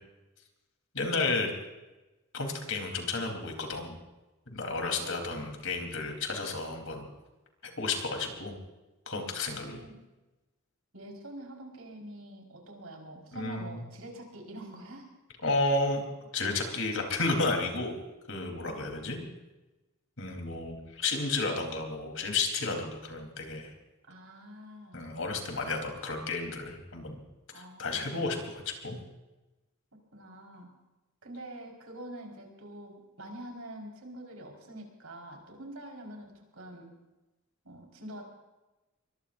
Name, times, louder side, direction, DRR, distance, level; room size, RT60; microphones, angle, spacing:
voice 1, 0.9-1.5 2.3-4.0 4.5-7.1 7.6-8.5 9.1-9.8 13.3-13.8 15.4-16.0 16.3-18.0 18.3-19.2 20.2-23.7 24.9-27.2 27.5-29.0, left 3 dB, 70° left, 3 dB, 3.9 m, -32 dB
voice 2, 9.5-10.0 10.9-15.1 18.6-18.9 24.1-25.2 27.5-28.3 30.1-30.7 31.2-36.9 37.6-38.2, right 1 dB, 80° right, 1 dB, 5.0 m, -46 dB
23.0 x 23.0 x 2.7 m, 1.1 s
head